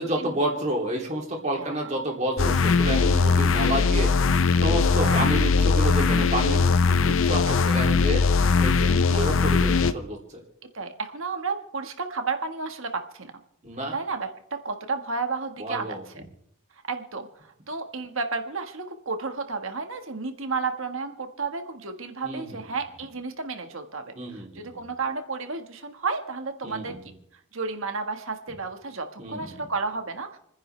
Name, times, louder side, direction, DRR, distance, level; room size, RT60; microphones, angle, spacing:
voice 1, 0.0-4.1 4.5-8.2 8.6-10.4 13.6-13.9 15.6-16.0 22.2-22.6 24.1-24.8 26.6-27.0 29.2-29.6, right 1 dB, 30° right, 0 dB, 3.0 m, -30 dB
voice 2, 1.5-1.9 2.9-3.4 5.0-5.3 7.5-7.9 9.1-9.3 10.7-13.3 13.9-16.2 16.9-17.3 17.7-24.0 24.3-27.0 27.5-30.4, right 4 dB, 65° right, 6 dB, 1.6 m, -32 dB
sound 1, 2.4-9.9, left 4 dB, 65° left, 0.6 m, -20 dB
29.5 x 10.5 x 3.3 m, 0.76 s
head